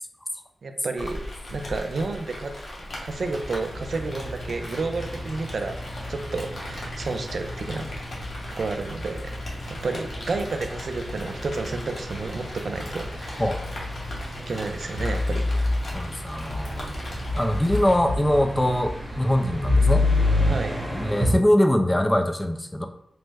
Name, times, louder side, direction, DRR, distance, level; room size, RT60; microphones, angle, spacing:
voice 1, 0.6-2.5 3.0-5.8 6.1-7.9 8.6-9.3 9.8-13.5 14.5-15.5 20.5-20.8, right 3 dB, 60° right, 6 dB, 0.3 m, -31 dB
Rain, 1.0-18.0, left 1 dB, 55° left, 0.8 m, -39 dB
sound 1, 3.0-21.3, left 2 dB, 15° right, 1.0 m, -29 dB
voice 2, 15.9-16.9 17.3-20.1 20.9-22.9, left 1 dB, 15° left, 5 dB, 0.3 m, -23 dB
3.1 x 2.0 x 3.3 m, 0.71 s
wide cardioid pair, 95°, 0 cm